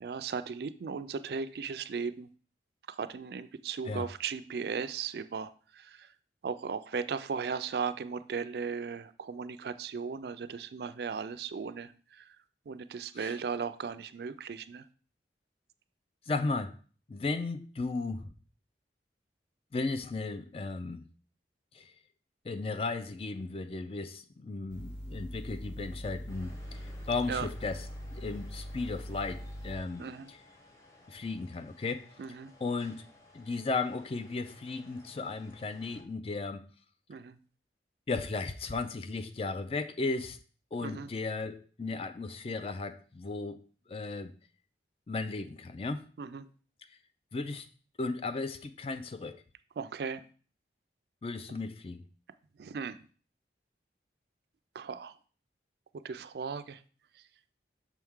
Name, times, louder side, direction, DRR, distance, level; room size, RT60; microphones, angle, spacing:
voice 1, 0.0-2.3 2.9-6.1 6.4-12.2 12.7-14.8 27.3-27.5 30.0-30.3 32.2-32.5 37.1-37.4 40.8-41.1 46.2-46.5 49.8-50.2 52.6-53.0 54.7-55.1 56.0-56.8, right 5 dB, 65° right, 0.4 m, -37 dB
voice 2, 16.3-16.8 17.1-18.3 19.7-21.0 21.7-21.9 22.4-26.8 27.1-30.4 31.1-32.1 32.6-33.1 33.3-36.7 38.1-40.4 40.7-44.3 45.1-46.1 47.3-47.7 48.0-49.4 51.2-52.0, left 3 dB, 30° left, 0.4 m, -35 dB
sound 1, 24.7-29.8, equal, 85° left, 1.3 m, -42 dB
sound 2, 26.3-36.0, left 1 dB, 15° left, 1.0 m, -57 dB
6.2 x 4.5 x 3.6 m
head